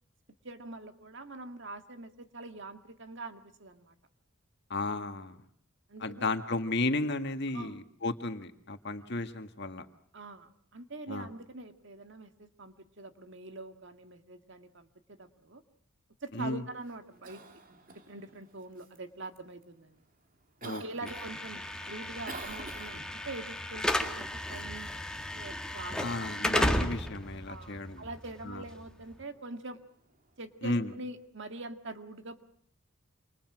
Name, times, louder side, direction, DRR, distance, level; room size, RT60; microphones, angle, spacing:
voice 1, 0.4-3.9 5.9-6.3 7.5-7.8 10.1-15.6 16.2-17.4 17.9-20.0 20.6-25.0 25.3-26.0 27.5-29.8 30.4-32.4, right 2 dB, 60° right, 7 dB, 2.0 m, -44 dB
voice 2, 4.7-5.4 6.0-9.9 11.1-11.3 16.3-16.6 20.6-20.8 26.0-28.0 28.4-28.6 30.6-30.9, left 2 dB, 55° left, 7 dB, 1.9 m, -33 dB
Cough, 16.8-31.2, right 3 dB, 40° right, 2.5 m, -53 dB
Slam / Alarm, 21.1-29.1, left 1 dB, 5° left, 1.8 m, -34 dB
28.0 x 27.5 x 6.2 m, 0.63 s
head